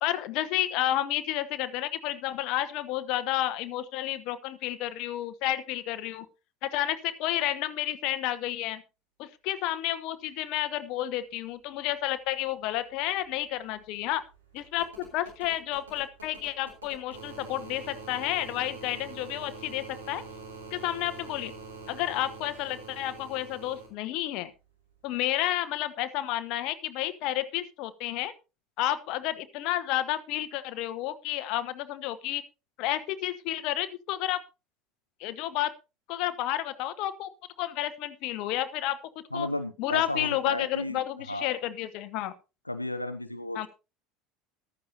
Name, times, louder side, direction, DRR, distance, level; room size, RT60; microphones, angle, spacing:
voice 1, 0.0-6.3 6.6-8.8 9.2-14.2 14.5-20.2 20.7-21.5 21.9-24.5 25.0-28.3 28.8-32.4 32.8-34.4 35.2-35.7 36.1-37.3 37.6-39.5 39.8-42.3 43.5-43.7, left 13 dB, 55° left, 12 dB, 1.0 m, -31 dB
sound 1, 12.7-12.8 13.0-23.9 25.3-25.4, right 4 dB, 75° right, 3.9 m, -45 dB
voice 2, 39.3-41.0 41.3-41.5 42.7-43.7, left 1 dB, 90° left, 9 dB, 0.7 m, -33 dB
14.5 x 12.5 x 2.8 m, 0.29 s
figure-of-eight pair, 65°, 0 cm